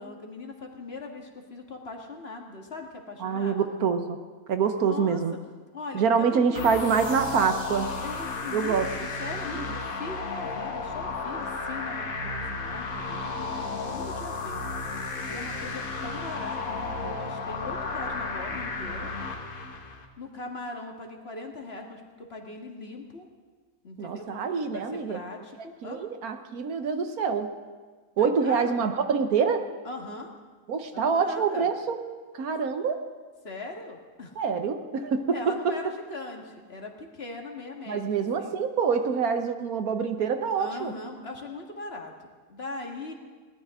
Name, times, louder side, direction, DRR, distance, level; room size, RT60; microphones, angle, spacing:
voice 1, 0.0-3.8 4.8-5.2 5.7-6.8 8.0-8.9 9.2-14.6 15.3-19.1 20.2-23.3 23.8-24.4 24.7-26.0 28.2-28.7 29.8-30.3 30.9-31.7 33.4-34.3 35.3-38.6 40.6-43.1, left 3 dB, 45° left, 2 dB, 1.9 m, -40 dB
voice 2, 3.2-4.2 4.5-5.4 5.9-7.9 8.5-8.9 9.5-9.6 24.0-25.2 25.6-27.5 28.2-29.7 30.7-32.0 32.3-33.0 34.4-35.5 37.9-40.9, right 6 dB, 80° right, 7 dB, 1.5 m, -26 dB
sound 1, 6.5-20.0, left 3 dB, 70° left, 1.8 m, -33 dB
22.0 x 17.5 x 3.7 m, 1.4 s
omnidirectional pair, 1.6 m